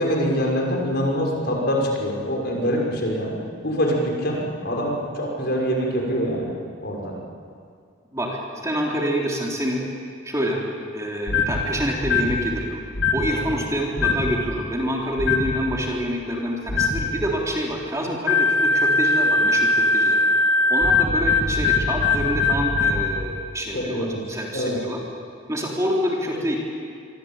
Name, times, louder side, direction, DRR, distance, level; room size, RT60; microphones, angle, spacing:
voice 1, 0.0-3.4 3.6-6.5 6.8-7.1 13.3-13.5 23.7-24.2 24.5-24.8, equal, 50° left, 0 dB, 6.0 m, -24 dB
voice 2, 8.1-9.8 10.2-10.6 10.9-12.8 13.1-20.2 20.7-25.0 25.5-26.6, equal, 15° right, -2 dB, 3.6 m, -27 dB
sound 1, 11.3-11.6 12.0-12.4 12.9-13.3 14.0-14.3 15.2-15.5 16.7-17.0 18.3-23.0, left 3 dB, 65° left, 3.4 m, -20 dB
27.0 x 24.5 x 9.0 m, 2.3 s
head